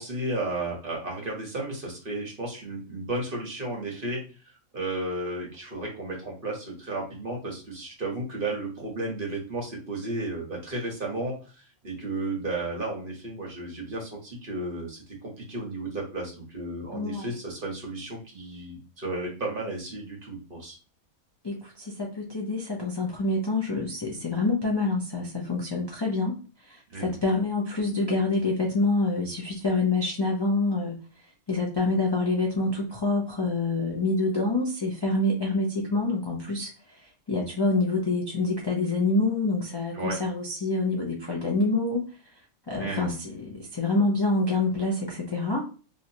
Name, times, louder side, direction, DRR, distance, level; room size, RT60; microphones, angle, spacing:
voice 1, 0.0-4.2 4.7-11.3 11.8-15.0 15.4-20.7 26.9-27.1 39.9-40.2 42.8-43.1, right 2 dB, 40° right, -1 dB, 1.2 m, -33 dB
voice 2, 16.9-17.3 21.4-26.3 26.6-31.0 31.5-36.7 37.0-42.0 42.7-45.7, left 2 dB, 35° left, -3 dB, 0.4 m, -26 dB
3.1 x 2.9 x 2.7 m, 0.36 s
omnidirectional pair, 1.5 m